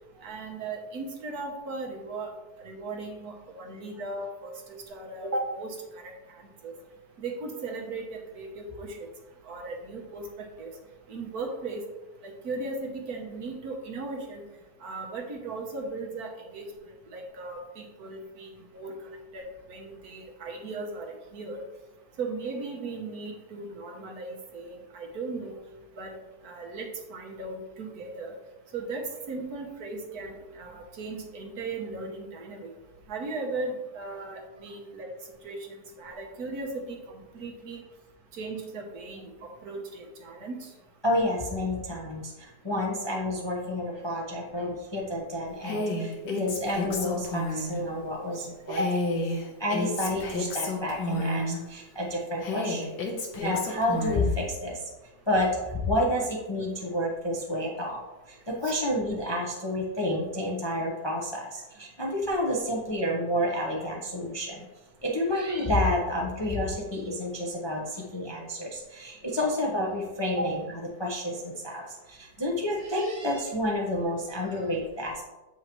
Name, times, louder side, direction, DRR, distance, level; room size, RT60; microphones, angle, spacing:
voice 1, 0.2-2.3 2.6-6.7 7.2-9.0 9.4-10.7 11.1-11.8 12.2-14.4 14.8-16.6 17.1-18.9 19.3-21.6 22.2-25.5 26.0-26.1 26.4-28.3 28.7-32.7 33.1-35.1 35.4-37.8 38.3-40.7 48.8-48.9 58.6-58.8 70.4-70.5, right 3 dB, 65° right, 1 dB, 1.5 m, -37 dB
voice 2, 41.0-48.8 49.6-54.8 55.3-58.0 58.3-64.6 65.0-70.6 71.0-75.2, left 1 dB, 25° left, -2 dB, 0.6 m, -30 dB
Female speech woman speaking, 45.6-47.8 48.7-51.6 52.4-54.3, left 2 dB, 90° left, 1.7 m, -31 dB
7.8 x 5.5 x 3.1 m, 1.1 s
omnidirectional pair, 1.8 m